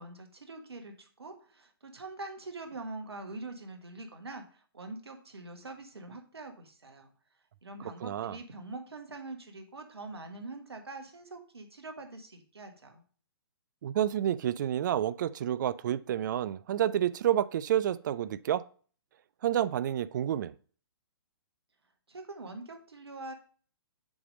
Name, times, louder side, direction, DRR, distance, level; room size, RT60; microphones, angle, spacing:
voice 1, 0.0-7.1 7.6-13.0 22.1-23.3, right 2 dB, 85° right, 1.3 m, -44 dB
voice 2, 8.0-8.4 13.8-18.6 19.4-20.5, right 11 dB, 50° right, 0.4 m, -29 dB
7.1 x 3.2 x 5.1 m
hypercardioid pair, 130°, 13 cm